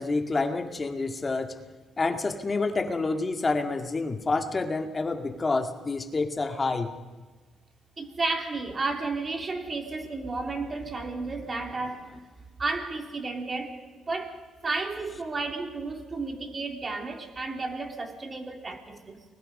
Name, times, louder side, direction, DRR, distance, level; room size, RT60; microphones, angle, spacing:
voice 1, 0.0-1.5 2.0-6.9, left 3 dB, 30° left, 6 dB, 2.1 m, -28 dB
voice 2, 8.0-12.2 12.6-19.2, right 3 dB, 30° right, 4 dB, 3.3 m, -32 dB
30.0 x 21.0 x 5.5 m, 1.3 s
cardioid pair, 90°, 0 cm